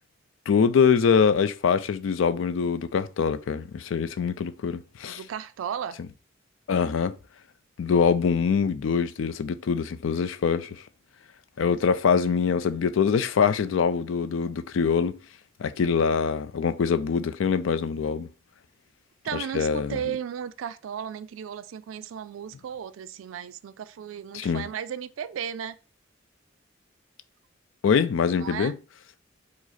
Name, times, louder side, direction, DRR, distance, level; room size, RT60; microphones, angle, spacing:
voice 1, 0.5-5.2 6.7-7.2 7.8-10.8 11.6-15.2 15.6-18.3 19.3-20.0 24.3-24.7 27.8-28.8, left 6 dB, 75° left, 0.4 m, -24 dB
voice 2, 5.0-6.0 19.2-25.8 28.4-28.8, right 8 dB, 85° right, 0.3 m, -35 dB
4.8 x 2.0 x 4.1 m
head